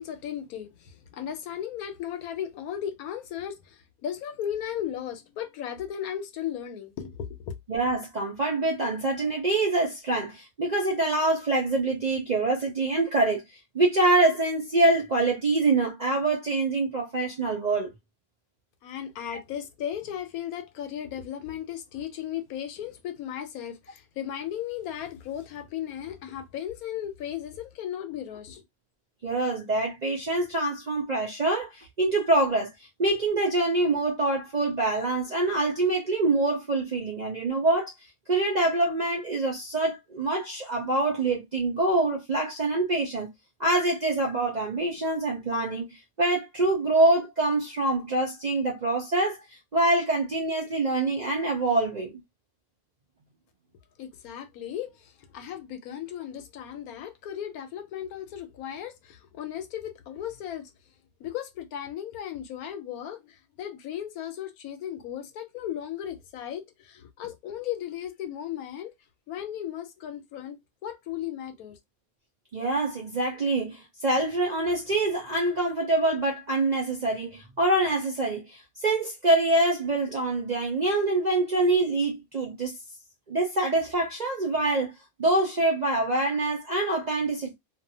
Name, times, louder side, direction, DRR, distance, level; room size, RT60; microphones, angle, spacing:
voice 1, 0.0-7.5 18.8-28.6 54.0-60.7 61.2-68.9 69.3-71.8, left 10 dB, 85° left, 1.1 m, -36 dB
voice 2, 7.7-13.4 13.7-17.9 19.3-19.4 29.2-32.7 33.0-37.9 38.3-43.3 43.6-45.8 46.2-49.4 49.7-52.1 72.5-82.8 83.3-84.9 85.2-87.5, right 2 dB, 50° right, 0.5 m, -25 dB
2.6 x 2.4 x 2.7 m
omnidirectional pair, 1.5 m